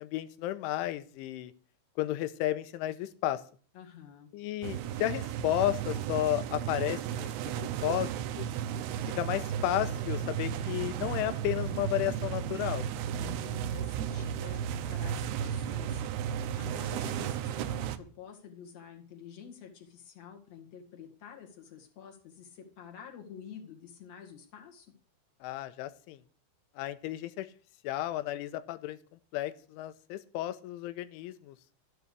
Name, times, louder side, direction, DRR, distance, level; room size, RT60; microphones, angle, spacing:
voice 1, 0.0-1.5 2.0-3.4 4.3-8.5 9.1-12.9 25.4-26.2 26.8-27.5 27.8-29.0 29.3-31.6, left 14 dB, 80° left, 12 dB, 3.2 m, -33 dB
voice 2, 3.7-4.3 13.1-24.9, left 7 dB, 50° left, 1 dB, 2.3 m, -49 dB
sound 1, 4.6-18.0, right 9 dB, 80° right, 2.4 m, -34 dB
12.5 x 8.1 x 6.7 m, 0.42 s
omnidirectional pair, 5.6 m